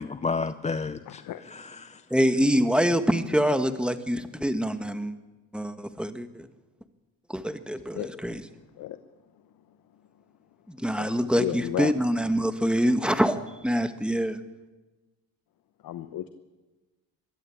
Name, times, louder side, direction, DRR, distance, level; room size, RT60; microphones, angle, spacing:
voice 1, 0.0-2.0, left 4 dB, 20° left, 0.5 m, -32 dB
voice 2, 1.1-1.5 7.9-8.2 8.8-9.0 11.0-11.9 15.8-16.3, left 12 dB, 65° left, 1.1 m, -33 dB
voice 3, 2.1-5.1 5.5-6.5 7.3-8.4 10.7-14.4, equal, 5° right, 1.5 m, -25 dB
23.0 x 13.0 x 8.5 m
cardioid pair, 105°, 36 cm